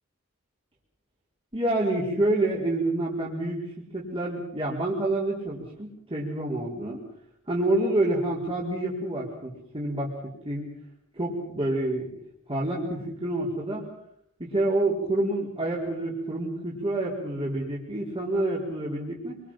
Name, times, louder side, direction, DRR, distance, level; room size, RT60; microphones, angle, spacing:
voice 1, 1.5-7.0 7.5-10.6 11.1-12.1 12.5-13.9 14.4-19.4, right 1 dB, 25° right, -4 dB, 4.7 m, -28 dB
27.5 x 25.0 x 5.9 m, 0.73 s
head